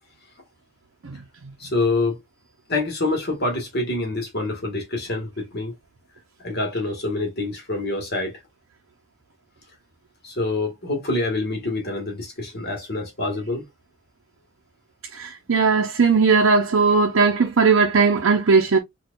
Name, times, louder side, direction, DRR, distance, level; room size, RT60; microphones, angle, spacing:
voice 1, 1.6-2.2 2.7-5.7 6.4-8.4 10.2-13.7, left 2 dB, 50° left, 1.4 m, -26 dB
voice 2, 15.1-18.8, right 4 dB, 70° right, 0.6 m, -18 dB
4.3 x 2.4 x 2.3 m
head